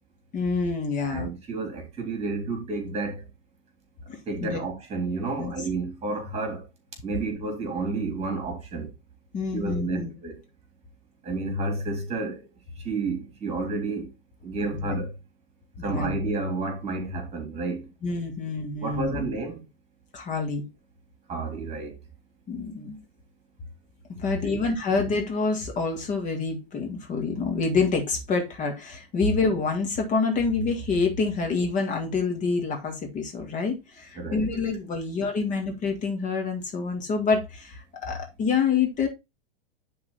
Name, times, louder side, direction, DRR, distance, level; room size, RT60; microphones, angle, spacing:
voice 1, 0.3-1.3 4.1-4.6 5.4-5.6 9.3-10.1 14.8-15.0 15.8-16.1 18.0-19.3 20.1-20.6 22.5-23.0 24.1-39.1, left 4 dB, 25° left, 1.9 m, -27 dB
voice 2, 1.1-3.2 4.3-6.7 7.0-8.9 9.5-10.4 11.2-12.4 12.8-14.1 14.4-15.1 15.8-17.8 18.8-19.6 21.3-21.9 24.4-24.6 34.2-34.5, right 3 dB, 20° right, 3.6 m, -30 dB
10.5 x 4.0 x 4.1 m
figure-of-eight pair, 95°, 30 cm